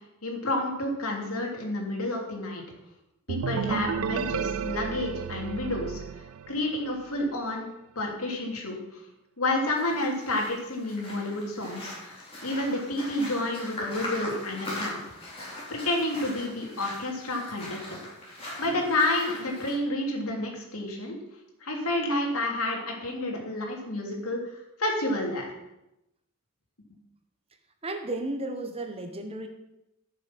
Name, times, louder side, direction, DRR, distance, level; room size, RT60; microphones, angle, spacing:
voice 1, 0.2-2.6 3.3-6.0 6.5-7.7 7.9-9.0 9.4-11.9 12.4-15.0 15.7-18.0 18.6-21.2 21.6-24.4 24.8-25.5, left 1 dB, 70° left, 0 dB, 3.2 m, -30 dB
sound 1, 3.3-7.0, right 7 dB, 65° right, 0.4 m, -32 dB
sound 2, 9.6-19.7, left 1 dB, 25° left, 4.4 m, -40 dB
voice 2, 27.8-29.5, right 2 dB, 25° right, 6 dB, 1.2 m, -33 dB
14.0 x 6.9 x 6.1 m, 0.89 s
head